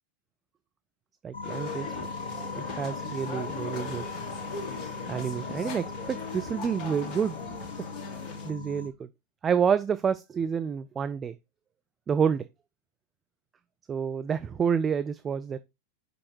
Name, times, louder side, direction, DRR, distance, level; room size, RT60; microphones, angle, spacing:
voice 1, 1.2-1.9 2.5-4.1 5.1-7.3 8.4-8.9 9.4-11.3 12.1-12.4 13.9-15.6, right 7 dB, 20° right, 0.4 m, -28 dB
sound 1, 1.3-8.9, left 3 dB, 65° left, 1.3 m, -39 dB
sound 2, 1.4-8.5, left 5 dB, 35° left, 1.3 m, -39 dB
5.4 x 5.3 x 4.4 m
figure-of-eight pair, 90°, 0 cm